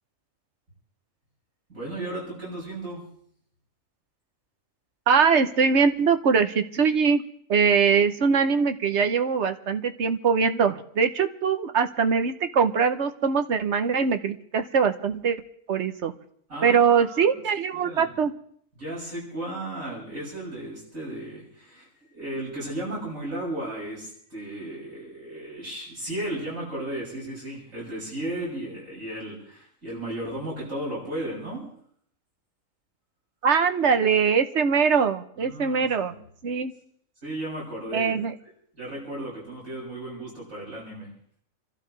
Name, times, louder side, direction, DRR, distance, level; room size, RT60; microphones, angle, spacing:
voice 1, 1.7-3.0 16.5-17.3 17.7-18.1 18.8-31.7 35.4-36.2 37.2-38.1 38.7-41.1, right 1 dB, 90° right, -6 dB, 7.6 m, -35 dB
voice 2, 5.1-7.2 7.5-15.4 15.7-16.1 16.6-18.3 33.4-36.1 36.4-36.7 37.9-38.3, right 6 dB, 60° right, 8 dB, 1.2 m, -22 dB
29.0 x 12.5 x 3.3 m, 0.64 s
omnidirectional pair, 1.4 m